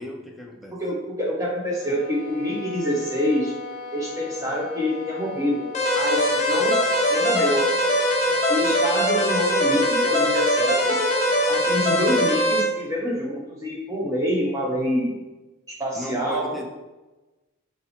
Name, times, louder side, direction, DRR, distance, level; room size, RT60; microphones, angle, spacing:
voice 1, 0.0-0.8 12.0-12.1 16.0-16.7, left 1 dB, ahead, 1 dB, 0.4 m, -36 dB
voice 2, 0.8-3.5 3.9-6.8 7.1-7.6 8.5-11.0 11.5-15.1 15.8-16.5, equal, 15° right, -3 dB, 0.8 m, -26 dB
sound 1, 1.7-6.4, left 4 dB, 85° left, 0.8 m, -38 dB
sound 2, 5.7-12.6, equal, 35° left, 0.8 m, -21 dB
4.1 x 2.0 x 4.2 m, 1.1 s
head